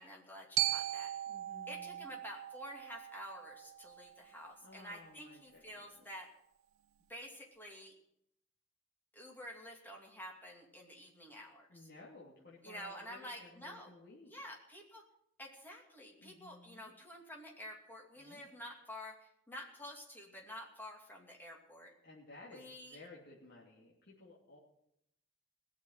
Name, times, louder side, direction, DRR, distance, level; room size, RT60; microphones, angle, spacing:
voice 1, 0.0-1.1 1.7-6.3 7.1-7.9 9.1-11.7 12.6-13.9 14.3-15.0 15.4-21.9 22.5-23.0, equal, 10° left, 0 dB, 2.6 m, -49 dB
Glockenspiel, 0.6-4.7, right 15 dB, 80° right, 0.5 m, -39 dB
voice 2, 1.3-2.1 4.6-6.1 11.7-14.3 16.2-16.9 18.2-18.5 22.0-24.6, left 2 dB, 55° left, -5 dB, 2.9 m, -56 dB
18.0 x 7.2 x 9.0 m, 0.76 s
head